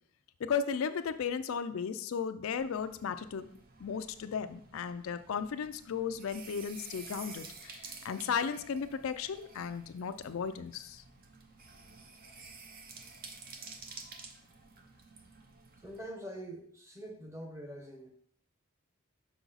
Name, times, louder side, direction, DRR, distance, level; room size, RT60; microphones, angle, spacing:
voice 1, 0.4-3.5 3.8-11.0, left 6 dB, 70° left, 10 dB, 0.4 m, -35 dB
sound 1, 2.6-16.1, right 4 dB, 45° right, 0.7 m, -51 dB
voice 2, 15.8-18.1, right 1 dB, 15° right, 3 dB, 0.9 m, -44 dB
6.0 x 4.8 x 3.9 m, 0.64 s
head